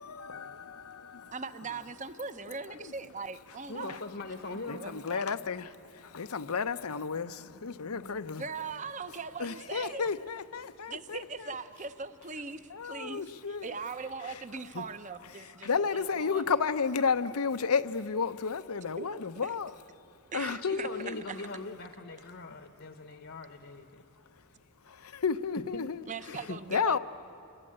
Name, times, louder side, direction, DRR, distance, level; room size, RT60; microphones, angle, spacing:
voice 1, 0.0-0.6 1.0-1.3 2.7-2.9 3.9-4.0 4.7-8.4 9.4-11.5 12.7-13.7 14.2-14.4 14.7-14.8 15.3-19.7 20.3-21.2 24.3-24.4 24.8-26.4 26.7-27.0, left 5 dB, 85° left, 0.8 m, -32 dB
voice 2, 1.3-4.0 4.7-5.2 8.4-10.1 10.9-13.2 13.6-16.4 19.0-19.2 20.3-21.5 26.1-27.0, right 4 dB, 35° right, 0.8 m, -40 dB
voice 3, 3.7-4.8 20.6-24.0 25.7-25.8 26.5-26.6, left 3 dB, 60° left, 1.0 m, -41 dB
27.0 x 21.0 x 8.8 m
head